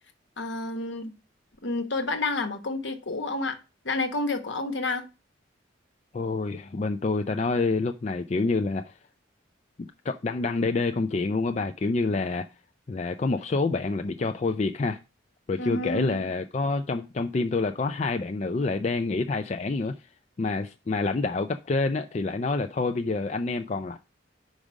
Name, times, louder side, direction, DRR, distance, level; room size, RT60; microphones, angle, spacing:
voice 1, 0.4-1.1 1.6-3.6 3.8-5.0 15.6-16.2, left 2 dB, 70° left, 1.2 m, -29 dB
voice 2, 6.1-8.9 9.8-12.5 12.9-15.0 15.5-19.9 20.4-24.0, left 3 dB, 35° left, 0.4 m, -27 dB
5.2 x 4.9 x 6.2 m
head